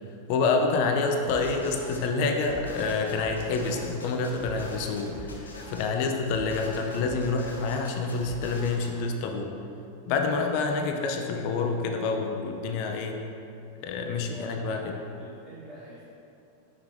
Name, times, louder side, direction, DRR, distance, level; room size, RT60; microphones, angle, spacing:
voice 1, 0.3-9.5 10.1-13.2 13.8-14.8, left 4 dB, 45° left, 3 dB, 0.6 m, -27 dB
sound 1, 1.2-2.0 2.4-5.9 6.2-8.9, equal, 75° left, 0.8 m, -42 dB
voice 2, 14.3-16.0, right 1 dB, 15° right, -10 dB, 1.4 m, -45 dB
5.7 x 5.7 x 3.3 m, 2.7 s
figure-of-eight pair, 90°, 0 cm